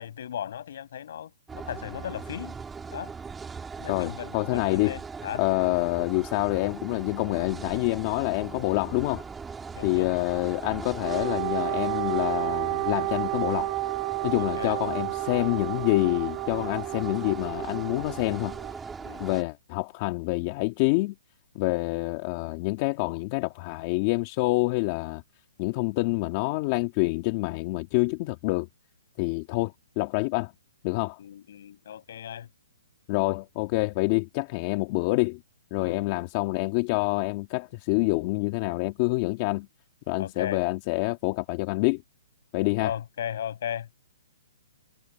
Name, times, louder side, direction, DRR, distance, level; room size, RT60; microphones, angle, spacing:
voice 1, 0.0-2.6 2.9-3.1 3.8-5.4 9.8-10.1 14.4-14.8 19.0-19.3 31.2-32.5 35.8-36.3 40.2-40.6 42.8-43.9, left 9 dB, 60° left, 6.9 m, -36 dB
sound 1, 1.5-19.4, right 5 dB, 10° right, 2.4 m, -40 dB
voice 2, 3.9-4.9 5.4-9.2 9.8-13.7 14.2-18.6 19.2-21.1 21.6-25.2 25.6-28.7 29.2-30.5 30.8-31.2 33.1-35.4 35.7-39.7 40.1-42.0 42.5-42.9, left 23 dB, 30° left, 2.0 m, -27 dB
Wind instrument woodwind instrument, 11.0-18.7, right 21 dB, 25° right, 1.6 m, -31 dB
hypercardioid pair, 160°, 0 cm